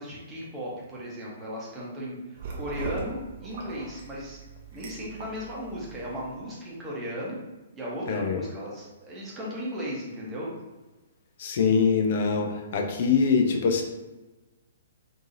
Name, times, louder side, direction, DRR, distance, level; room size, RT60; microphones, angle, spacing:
voice 1, 0.0-4.4 4.7-7.4 7.7-10.5, equal, 15° right, -6 dB, 1.0 m, -36 dB
sound 1, 2.4-6.4, right 4 dB, 40° right, 0.6 m, -40 dB
voice 2, 8.1-8.4 11.4-13.8, left 5 dB, 45° left, 3 dB, 0.5 m, -23 dB
3.7 x 2.7 x 2.5 m, 1.1 s
figure-of-eight pair, 120°, 0 cm